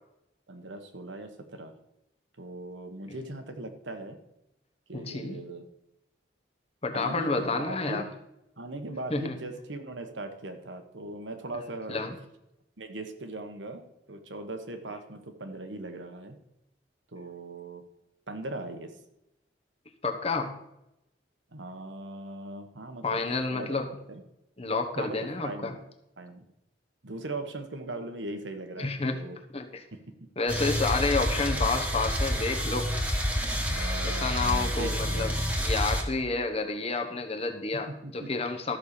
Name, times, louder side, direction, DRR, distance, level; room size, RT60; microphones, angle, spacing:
voice 1, 0.5-1.7 2.4-4.2 4.9-5.7 6.9-8.1 8.6-12.0 12.8-16.4 17.1-17.8 18.3-19.0 21.5-23.2 23.5-23.7 24.1-24.2 24.9-25.8 26.2-26.4 27.0-29.4 29.9-30.0 33.7-35.3 37.9-38.3, right 2 dB, 85° right, 7 dB, 1.4 m, -39 dB
voice 2, 4.9-5.4 6.8-8.1 9.1-9.3 11.9-12.1 20.0-20.6 23.0-23.9 24.6-25.7 28.8-29.3 29.5-29.8 30.4-32.9 34.0-35.3 35.6-38.8, left 3 dB, 35° left, 4 dB, 1.2 m, -30 dB
sound 1, 30.5-36.0, equal, 10° right, 1.4 m, -28 dB
13.0 x 5.7 x 6.8 m, 0.87 s
head